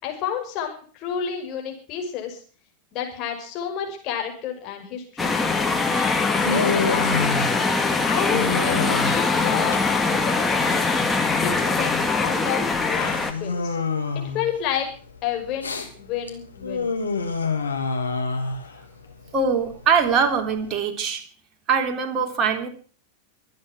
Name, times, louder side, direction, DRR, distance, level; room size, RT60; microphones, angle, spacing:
voice 1, 0.0-2.4 2.9-5.4 5.9-7.1 8.0-10.9 11.4-13.8 14.3-14.9 15.2-16.9, left 8 dB, 35° left, 2 dB, 6.2 m, -30 dB
sound 1, 5.2-13.3, left 4 dB, 10° left, 2.2 m, -22 dB
Human voice, 5.8-20.7, left 4 dB, 75° left, 2.9 m, -29 dB
voice 2, 19.3-21.2 21.7-22.7, right 5 dB, 30° right, 4 dB, 3.4 m, -22 dB
24.0 x 9.6 x 6.3 m, 0.43 s
figure-of-eight pair, 90°, 0 cm